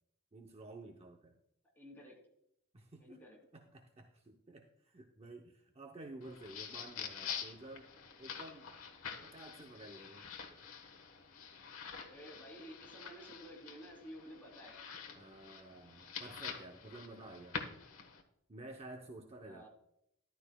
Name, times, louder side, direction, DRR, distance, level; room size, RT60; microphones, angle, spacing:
voice 1, 0.3-1.3 2.7-3.2 3.5-8.7 9.2-11.0 15.1-17.6 18.5-19.7, right 2 dB, 30° right, 2 dB, 0.8 m, -52 dB
voice 2, 1.8-2.2 3.0-3.4 12.0-14.8 15.1-15.2 19.4-19.7, equal, 10° left, -1 dB, 3.0 m, -52 dB
Book Pages Turning, 6.2-18.2, left 6 dB, 75° left, 1.3 m, -47 dB
13.5 x 12.0 x 2.3 m, 0.76 s
head